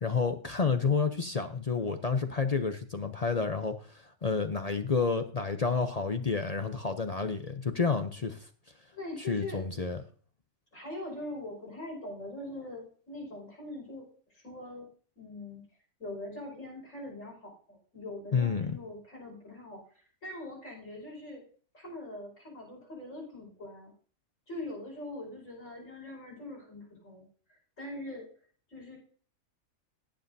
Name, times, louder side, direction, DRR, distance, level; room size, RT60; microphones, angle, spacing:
voice 1, 0.0-8.5 9.3-10.0 18.3-18.8, left 5 dB, 40° left, 7 dB, 0.5 m, -30 dB
voice 2, 8.9-9.6 10.7-14.9 15.2-15.6 16.0-21.4 21.7-23.9 24.5-27.2 27.5-28.3 28.7-29.0, left 1 dB, 65° left, -3 dB, 5.4 m, -42 dB
18.5 x 7.6 x 2.7 m, 0.43 s
omnidirectional pair, 1.4 m